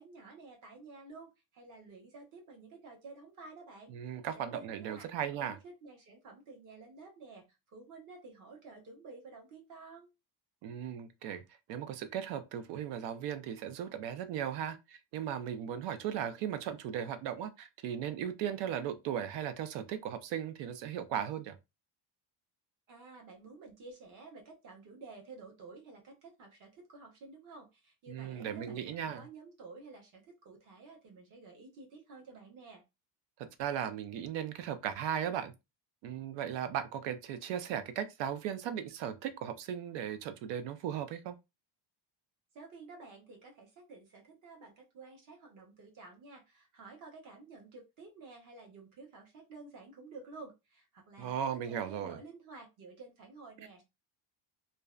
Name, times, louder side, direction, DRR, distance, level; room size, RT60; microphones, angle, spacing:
voice 1, 0.0-3.9 4.3-5.1 5.4-10.1 22.9-32.8 42.5-53.8, right 3 dB, 45° right, 0.9 m, -52 dB
voice 2, 3.9-5.6 10.6-11.4 11.7-21.6 28.1-29.3 33.4-35.5 36.0-41.3 51.2-52.2, right 9 dB, 75° right, 0.5 m, -37 dB
2.5 x 2.1 x 2.3 m
cardioid pair, 175°, 44 cm